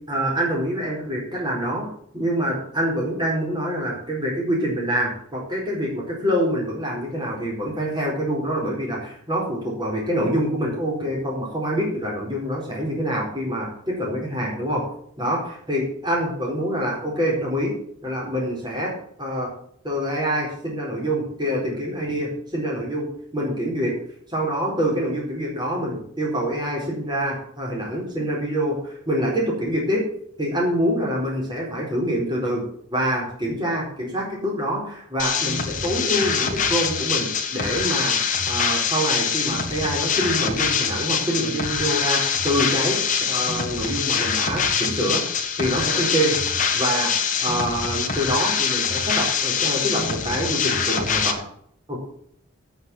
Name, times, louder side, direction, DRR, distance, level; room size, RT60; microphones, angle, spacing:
voice 1, 0.1-1.9 2.1-14.8 15.2-17.7 18.0-19.5 19.8-23.1 23.3-24.0 24.3-30.1 30.4-32.6 32.9-38.2 38.5-43.0 43.3-45.2 45.6-46.4 46.7-47.1 47.4-51.4 51.9-52.0, equal, 20° right, -2 dB, 4.4 m, -25 dB
sound 1, 35.2-51.3, left 6 dB, 40° left, 1.6 m, -24 dB
9.0 x 8.0 x 8.7 m, 0.65 s
head